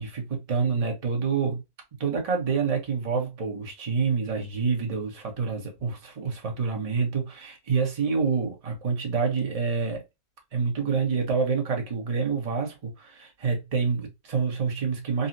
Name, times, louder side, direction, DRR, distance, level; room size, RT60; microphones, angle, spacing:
voice 1, 0.0-1.6 2.0-10.0 10.5-15.3, right 5 dB, 30° right, 0.8 m, -27 dB
3.9 x 2.0 x 2.6 m
omnidirectional pair, 1.5 m